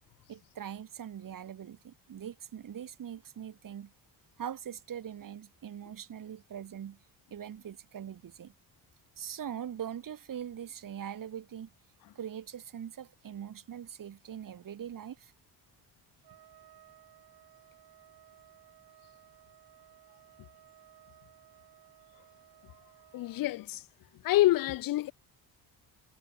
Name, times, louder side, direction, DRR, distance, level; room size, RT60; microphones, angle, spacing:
voice 1, 0.3-3.9 4.4-7.0 7.3-8.5 9.2-11.7 12.2-15.3, right 9 dB, 55° right, 4.0 m, -42 dB
Trumpet, 16.2-23.6, right 12 dB, 70° right, 4.2 m, -59 dB
voice 2, 23.1-23.8 24.2-25.1, left 16 dB, 60° left, 0.5 m, -27 dB
cardioid pair, 105°, 39 cm